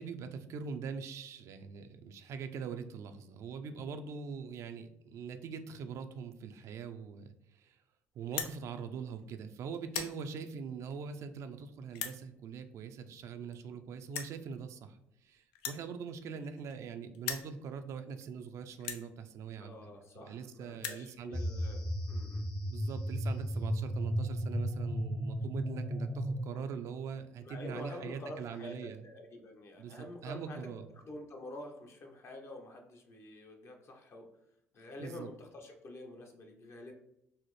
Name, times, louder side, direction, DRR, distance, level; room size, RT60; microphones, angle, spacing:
voice 1, 0.0-7.8 8.2-15.0 15.2-19.8 20.2-21.4 22.7-29.0 29.8-30.0 30.2-30.9 35.0-35.3, right 6 dB, 65° right, 8 dB, 0.4 m, -42 dB
sound 1, 8.2-8.6 9.2-9.4 9.7-10.2 10.9-11.0 11.9-12.2 13.2-13.3 13.5-13.6 14.1-14.4 15.5-16.9 17.1-17.5 18.2-18.3 18.8-19.1 20.0-20.1 20.3-20.4 20.6-21.1, left 8 dB, 90° left, 0.4 m, -39 dB
voice 2, 19.6-22.5 27.4-34.3 34.7-36.9, left 1 dB, 50° left, 2 dB, 0.8 m, -48 dB
sound 2, 21.3-26.4, equal, 20° left, 0.7 m, -34 dB
4.0 x 2.0 x 3.1 m, 0.80 s
supercardioid pair, 70°, 6 cm